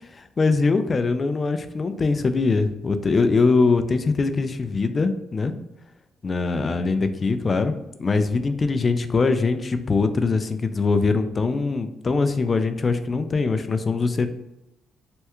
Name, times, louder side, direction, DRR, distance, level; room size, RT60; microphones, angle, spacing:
voice 1, 0.0-5.5 6.2-7.7 8.0-14.3, left 4 dB, 35° left, 9 dB, 0.3 m, -22 dB
3.3 x 2.2 x 2.9 m, 0.93 s
cardioid pair, 90°, 0 cm